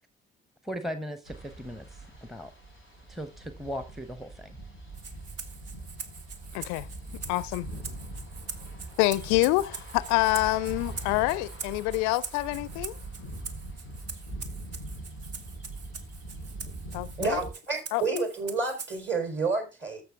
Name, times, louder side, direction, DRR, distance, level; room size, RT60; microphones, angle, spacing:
voice 1, 0.6-2.5 3.1-4.6, equal, ahead, 0.9 m, -38 dB
sound 1, 1.2-17.5, right 2 dB, 85° right, 4.9 m, -42 dB
Rattle (instrument), 4.9-19.1, right 5 dB, 55° right, 1.4 m, -43 dB
voice 2, 6.5-6.9 7.3-7.7 9.0-12.9 16.9-17.4 17.9-18.0, left 19 dB, 65° left, 0.5 m, -26 dB
voice 3, 17.2-20.0, right 3 dB, 40° right, 4.2 m, -29 dB
14.0 x 6.1 x 3.6 m
figure-of-eight pair, 45°, 30 cm